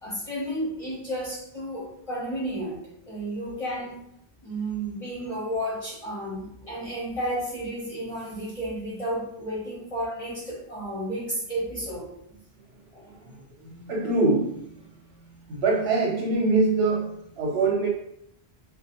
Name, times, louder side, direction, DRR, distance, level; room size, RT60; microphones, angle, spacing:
voice 1, 0.0-2.8 3.1-4.0 4.4-12.1 12.9-13.0, right 1 dB, 35° left, -8 dB, 0.8 m, -32 dB
voice 2, 13.6-14.9 15.2-17.9, right 3 dB, 70° right, -2 dB, 1.0 m, -24 dB
2.4 x 2.1 x 2.8 m, 0.74 s
omnidirectional pair, 1.1 m